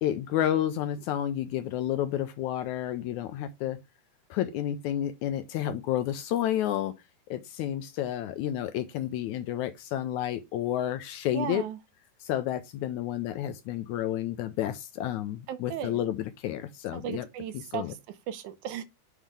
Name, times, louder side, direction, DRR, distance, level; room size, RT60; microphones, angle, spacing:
voice 1, 0.0-3.8 4.3-6.9 7.3-11.6 12.2-17.3 17.7-17.9, left 11 dB, 75° left, 1.8 m, -30 dB
voice 2, 11.3-11.8 15.5-16.0 16.9-17.8 18.3-18.8, right 9 dB, 75° right, 2.1 m, -35 dB
7.3 x 5.5 x 3.4 m
omnidirectional pair, 3.8 m